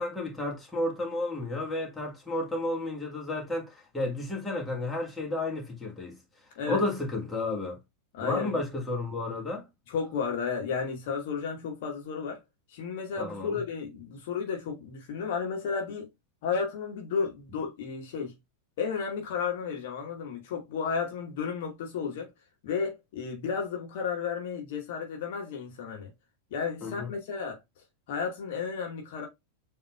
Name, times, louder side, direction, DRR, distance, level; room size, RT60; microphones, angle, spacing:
voice 1, 0.0-6.2 6.7-7.8 8.2-9.7 13.2-13.6 26.8-27.1, left 2 dB, 10° left, 1.5 m, -32 dB
voice 2, 8.1-8.6 9.9-12.4 12.7-16.1 16.4-18.3 18.8-22.3 22.6-26.1 26.5-27.6 28.1-29.3, left 6 dB, 50° left, 1.2 m, -33 dB
7.2 x 2.8 x 2.3 m
figure-of-eight pair, 90°, 0 cm